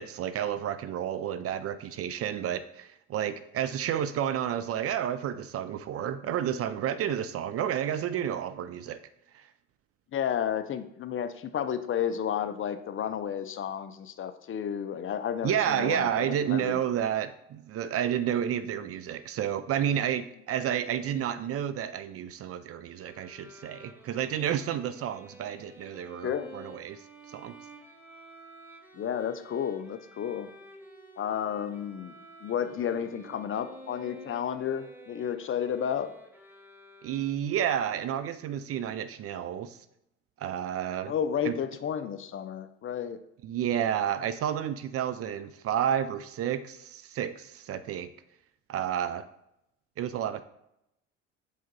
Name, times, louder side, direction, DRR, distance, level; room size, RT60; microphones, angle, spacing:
voice 1, 0.0-9.0 9.3-9.4 15.4-27.0 27.3-27.5 37.0-39.8 40.4-41.1 41.4-41.6 43.4-48.1 48.7-49.2 50.0-50.4, right 10 dB, 40° right, 13 dB, 0.4 m, -30 dB
voice 2, 10.1-16.8 26.2-26.5 28.9-30.5 31.2-32.1 32.4-36.1 41.1-43.2, left 8 dB, 35° left, 10 dB, 0.6 m, -32 dB
Bowed string instrument, 23.0-37.7, right 1 dB, 5° right, 1.1 m, -51 dB
5.0 x 4.9 x 4.0 m, 0.82 s
hypercardioid pair, 70°, 37 cm